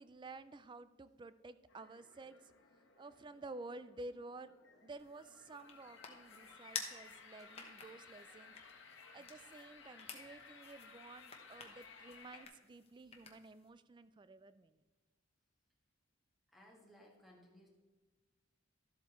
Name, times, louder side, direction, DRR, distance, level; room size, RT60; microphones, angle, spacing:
voice 1, 0.0-2.5 3.0-4.5 4.8-8.5 9.1-14.8, right 2 dB, 25° right, 14 dB, 0.3 m, -52 dB
sound 1, 1.7-12.5, left 5 dB, 65° left, 1.2 m, -59 dB
sound 2, 5.0-13.7, left 5 dB, 30° left, 1.0 m, -52 dB
voice 2, 16.5-17.7, equal, ahead, -1 dB, 1.7 m, -61 dB
12.5 x 7.9 x 3.1 m, 1.3 s
head